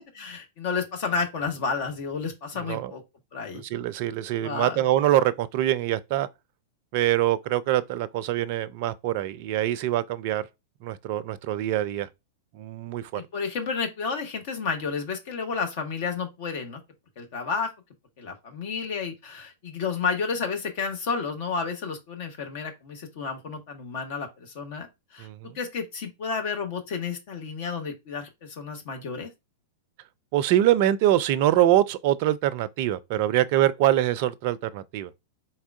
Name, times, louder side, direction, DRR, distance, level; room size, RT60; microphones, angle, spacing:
voice 1, 0.0-3.0 3.3-3.6 4.4-4.8 13.2-16.8 17.2-17.7 18.2-24.9 25.1-29.3, left 5 dB, 55° left, 1.0 m, -31 dB
voice 2, 3.5-6.3 6.9-10.4 10.8-12.1 12.5-13.2 25.2-25.5 30.3-35.1, right 13 dB, 50° right, 0.4 m, -24 dB
4.2 x 3.5 x 2.5 m
figure-of-eight pair, 100°, 0 cm